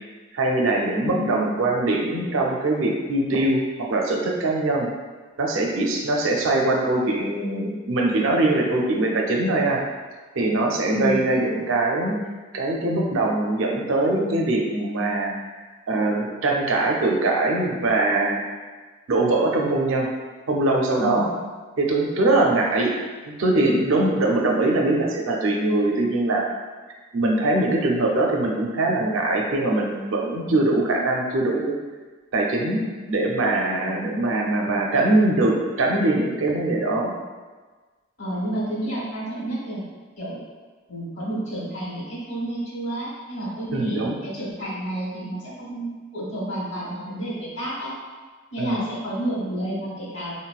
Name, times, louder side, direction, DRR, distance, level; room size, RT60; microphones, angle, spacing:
voice 1, 0.3-4.9 5.4-9.8 10.3-12.2 12.5-15.4 15.9-18.4 19.1-20.1 20.5-21.3 21.8-22.9 23.3-26.4 27.1-31.7 32.3-37.1 43.7-44.2 48.6-48.9, right 2 dB, 70° right, 0 dB, 0.4 m, -22 dB
voice 2, 1.0-1.6 10.8-11.4 21.0-21.4 30.4-30.5 38.2-39.8 40.2-40.4 40.9-47.9 48.5-50.3, equal, 60° left, -6 dB, 1.0 m, -30 dB
3.9 x 2.0 x 2.3 m, 1.4 s
head